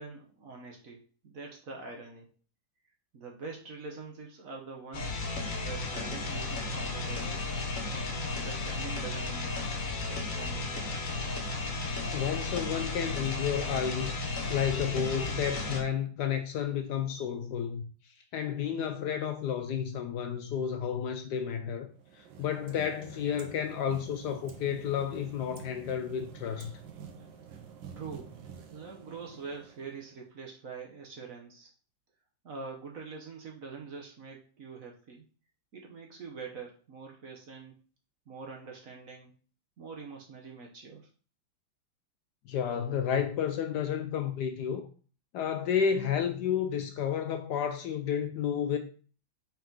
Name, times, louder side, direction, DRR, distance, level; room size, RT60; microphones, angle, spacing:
voice 1, 0.0-2.3 3.1-5.1 5.6-7.5 7.9-9.6 10.1-10.9 28.0-28.3 28.7-31.7 32.4-35.2 35.7-37.8 38.3-39.3 39.8-41.1, right 4 dB, 55° right, 1.1 m, -44 dB
sound 1, 4.9-15.8, left 3 dB, 50° left, 1.3 m, -34 dB
voice 2, 12.1-14.2 14.5-17.8 18.3-26.7 42.5-44.9 45.3-48.8, left 8 dB, 70° left, 1.1 m, -31 dB
sound 2, 21.9-30.2, right 7 dB, 80° right, 1.6 m, -48 dB
5.4 x 4.7 x 3.8 m
omnidirectional pair, 2.1 m